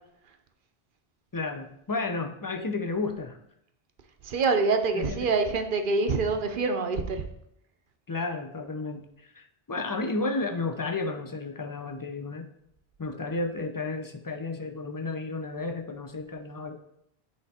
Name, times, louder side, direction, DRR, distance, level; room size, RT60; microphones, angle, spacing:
voice 1, 1.3-3.4 4.9-5.3 8.1-12.5 13.0-16.8, left 3 dB, 35° left, 6 dB, 0.4 m, -32 dB
voice 2, 4.2-7.3, right 4 dB, 60° right, 7 dB, 0.8 m, -25 dB
8.0 x 3.4 x 4.2 m, 0.74 s
omnidirectional pair, 1.0 m